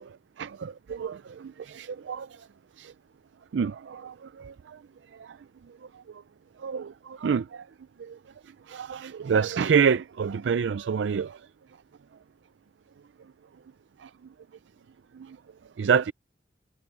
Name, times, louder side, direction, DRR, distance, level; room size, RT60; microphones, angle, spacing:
voice 1, 0.9-2.5 2.8-2.9 3.5-4.8 5.2-5.4 6.6-7.7 8.0-8.2 8.7-11.5 14.0-14.1 15.1-15.4 15.8-16.1, right 6 dB, 85° right, 0.4 m, -28 dB
head